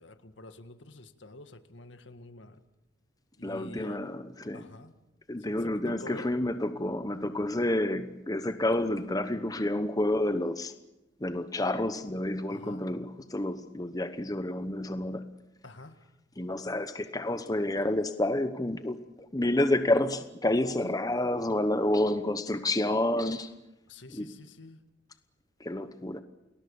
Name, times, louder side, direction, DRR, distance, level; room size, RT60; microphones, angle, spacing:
voice 1, 0.0-2.6 3.4-4.0 4.5-4.9 5.4-6.3 12.5-12.9 15.6-16.1 20.8-20.9 23.9-24.8, left 2 dB, 75° left, 1.8 m, -47 dB
voice 2, 3.4-4.7 5.3-10.7 11.2-15.3 16.4-19.0 19.3-23.5 24.1-24.3 25.6-26.2, left 1 dB, 20° left, 1.0 m, -29 dB
30.0 x 20.0 x 7.1 m
head